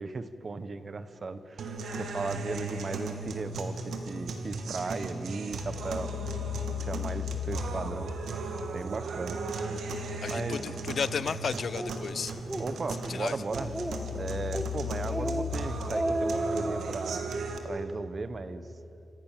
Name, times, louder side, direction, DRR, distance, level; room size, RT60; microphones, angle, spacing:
voice 1, 0.0-6.3 6.6-8.1 8.7-9.4 9.7-9.9 10.3-10.6 12.6-13.7 14.1-17.3 17.6-18.7, right 3 dB, 30° right, 12 dB, 1.1 m, -36 dB
sound 1, 1.6-17.6, equal, 90° right, 2.8 m, -35 dB
voice 2, 10.2-12.3 13.1-13.4, left 6 dB, 50° left, 15 dB, 0.8 m, -33 dB
Speech, 11.7-11.9 12.4-12.7 13.0-13.1 13.5-14.1 14.5-14.7 15.1-15.5 15.8-16.8, right 1 dB, 10° right, 1.5 m, -32 dB
28.5 x 26.5 x 7.5 m, 2.9 s
wide cardioid pair, 180°, 0 cm